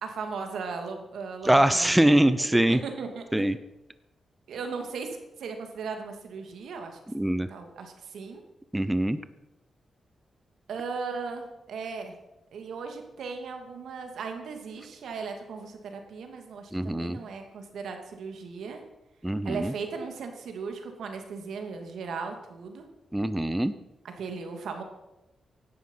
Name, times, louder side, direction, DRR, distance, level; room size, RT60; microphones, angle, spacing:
voice 1, 0.0-3.4 4.5-7.0 7.5-8.4 10.7-12.1 12.5-18.8 19.4-22.8 24.0-24.8, right 5 dB, 85° right, 5 dB, 2.7 m, -37 dB
voice 2, 1.5-2.8 3.3-3.6 7.1-7.5 8.7-9.2 16.7-17.2 19.2-19.7 23.1-23.7, right 1 dB, 5° right, 12 dB, 0.7 m, -23 dB
16.5 x 11.5 x 5.7 m, 0.97 s
wide cardioid pair, 115°, 0 cm